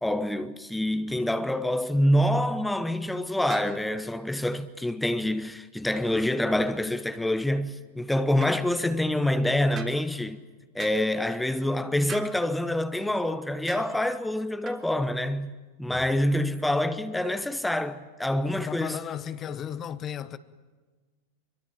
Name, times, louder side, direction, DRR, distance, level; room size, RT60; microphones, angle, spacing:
voice 1, 0.0-10.4 10.7-15.5 15.8-19.0, left 1 dB, 5° left, 1.0 m, -26 dB
sound 1, 3.5-3.8 8.4-8.6 9.7-10.0 10.8-11.0 12.1-12.3 13.7-13.9 14.6-14.8, right 7 dB, 30° right, 3.4 m, -41 dB
voice 2, 18.6-20.4, left 9 dB, 30° left, 1.1 m, -35 dB
26.5 x 23.5 x 8.8 m
figure-of-eight pair, 90°, 0 cm